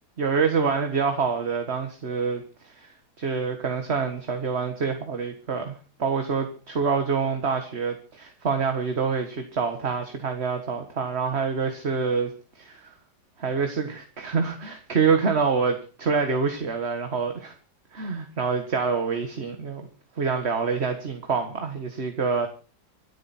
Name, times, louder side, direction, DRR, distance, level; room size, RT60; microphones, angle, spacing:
voice 1, 0.2-12.9 13.4-17.5 17.9-19.8 20.2-22.5, right 5 dB, 35° right, 5 dB, 1.7 m, -26 dB
26.0 x 9.1 x 4.3 m, 0.36 s
omnidirectional pair, 2.1 m